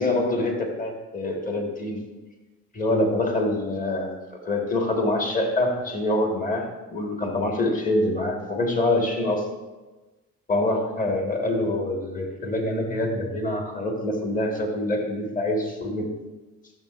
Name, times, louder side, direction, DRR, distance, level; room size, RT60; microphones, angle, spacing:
voice 1, 0.0-2.0 2.7-9.4 10.5-16.1, left 1 dB, 25° left, 1 dB, 1.6 m, -25 dB
12.5 x 6.8 x 2.5 m, 1.2 s
cardioid pair, 90°, 30 cm